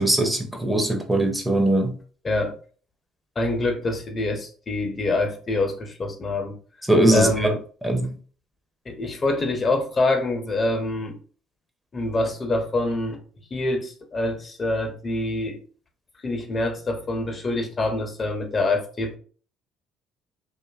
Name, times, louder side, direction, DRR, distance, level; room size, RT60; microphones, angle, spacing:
voice 1, 0.0-1.9 6.9-7.5 7.8-8.1, right 1 dB, 10° right, 0.6 m, -20 dB
voice 2, 2.2-2.6 3.4-6.6 7.1-7.6 8.9-11.2 11.9-13.2 13.5-15.6 16.2-19.2, left 2 dB, 35° left, 0.6 m, -25 dB
2.5 x 2.4 x 2.3 m
hypercardioid pair, 65°, 0 cm